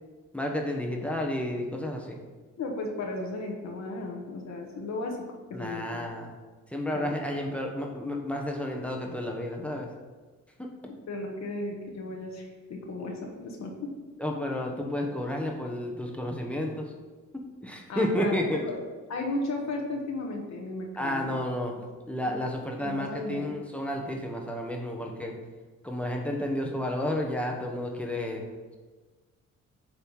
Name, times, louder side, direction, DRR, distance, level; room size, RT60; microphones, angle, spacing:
voice 1, 0.3-2.2 5.5-6.3 6.7-9.9 10.6-10.9 14.2-16.9 17.3-18.6 21.0-21.8 22.1-25.4 25.8-28.5, left 1 dB, 5° left, 1 dB, 1.2 m, -31 dB
voice 2, 2.6-5.2 5.5-6.0 6.9-7.2 10.8-13.9 17.9-18.8 19.1-21.3 22.3-22.4 22.8-23.6, left 2 dB, 65° left, 1 dB, 1.3 m, -35 dB
9.2 x 3.3 x 5.6 m, 1.3 s
cardioid pair, 90°, 30 cm